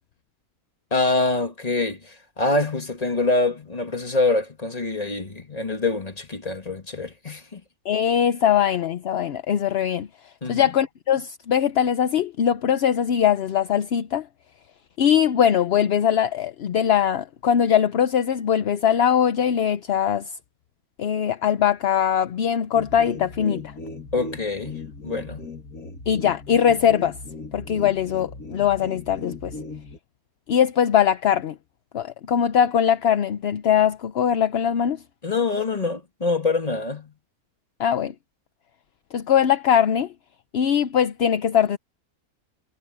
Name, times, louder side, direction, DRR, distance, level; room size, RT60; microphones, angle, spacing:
voice 1, 0.9-7.6 10.4-10.7 24.1-25.5 35.2-37.1, left 3 dB, 25° left, 1.9 m, -25 dB
voice 2, 7.9-10.1 10.5-14.3 15.0-20.3 21.0-23.6 26.1-27.1 27.5-29.5 30.5-31.5 31.9-35.0 37.8-38.1 39.1-40.1 40.5-41.8, left 9 dB, 55° left, 0.8 m, -21 dB
sound 1, 22.7-30.0, left 3 dB, 75° left, 3.1 m, -37 dB
omnidirectional pair, 1.6 m